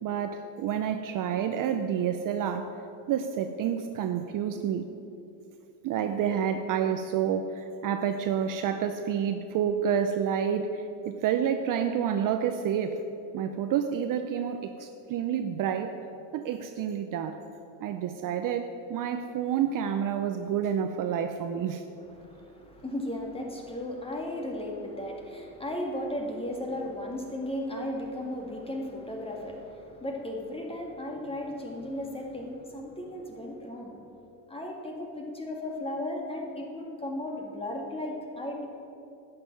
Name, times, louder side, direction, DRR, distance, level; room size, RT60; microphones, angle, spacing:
voice 1, 0.0-2.7 3.1-4.9 5.8-13.0 13.3-16.0 16.3-17.4 17.8-21.8, right 8 dB, 40° right, 7 dB, 0.7 m, -29 dB
voice 2, 22.2-34.0 34.5-38.7, left 1 dB, 10° left, 0 dB, 2.1 m, -35 dB
11.0 x 6.9 x 9.3 m, 2.9 s
supercardioid pair, 115°, 49 cm